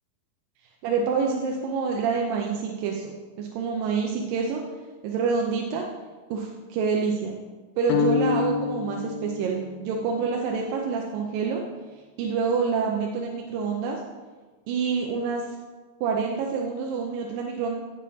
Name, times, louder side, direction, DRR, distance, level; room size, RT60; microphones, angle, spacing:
voice 1, 0.8-4.6 5.0-5.9 6.3-7.3 7.8-11.6 12.2-14.0 14.7-15.4 16.0-17.8, right 5 dB, 80° right, 0 dB, 2.4 m, -27 dB
sound 1, 7.9-10.2, left 7 dB, 80° left, 2.2 m, -27 dB
16.5 x 6.4 x 2.8 m, 1.3 s
omnidirectional pair, 4.0 m